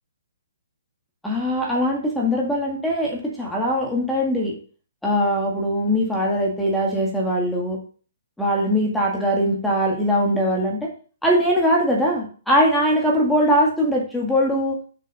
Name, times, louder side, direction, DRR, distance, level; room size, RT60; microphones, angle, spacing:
voice 1, 1.2-4.6 5.0-7.8 8.4-10.9 11.2-14.8, equal, ahead, -3 dB, 2.0 m, -21 dB
6.7 x 6.2 x 6.5 m, 0.41 s
hypercardioid pair, 160°, 0 cm